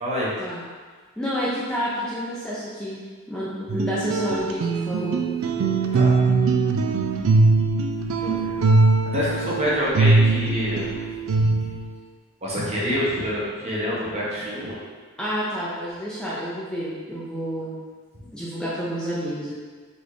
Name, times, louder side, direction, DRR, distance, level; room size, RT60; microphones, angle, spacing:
voice 1, 0.0-0.3 5.9-6.1 8.2-8.6 9.1-10.9 11.3-11.6 12.4-14.8, equal, 30° right, -6 dB, 1.0 m, -27 dB
voice 2, 1.2-3.0 3.3-5.2 15.2-17.7 18.3-19.5, equal, 5° left, -9 dB, 0.5 m, -29 dB
sound 1, 3.7-11.9, right 3 dB, 65° right, 0.3 m, -21 dB
4.1 x 3.3 x 3.2 m, 1.5 s
head